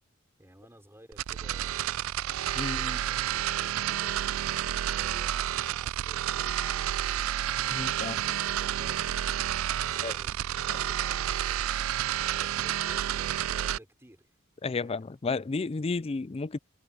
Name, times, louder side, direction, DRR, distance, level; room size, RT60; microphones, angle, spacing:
voice 1, 0.4-1.9 2.6-6.8 7.9-9.1 9.8-10.3 12.2-14.3 14.8-14.9, right 1 dB, 10° right, 4.6 m, -54 dB
sound 1, 1.1-13.8, right 11 dB, 85° right, 0.4 m, -30 dB
voice 2, 2.6-3.0 7.7-8.2 10.0-10.2 10.7-10.8 14.6-16.6, left 3 dB, 30° left, 0.4 m, -32 dB
head